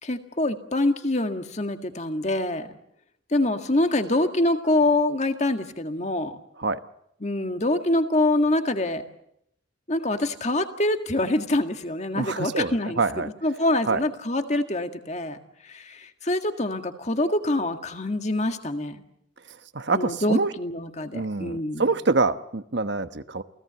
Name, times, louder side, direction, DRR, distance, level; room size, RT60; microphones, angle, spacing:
voice 1, 0.0-2.7 3.3-6.4 7.2-9.0 9.9-13.0 13.4-15.4 15.6-19.0 19.9-21.8, left 1 dB, 35° left, 7 dB, 1.8 m, -25 dB
voice 2, 12.1-13.3 13.9-14.0 19.5-20.5 21.1-23.4, right 3 dB, 60° right, 11 dB, 1.1 m, -26 dB
29.0 x 17.5 x 8.1 m, 0.77 s
head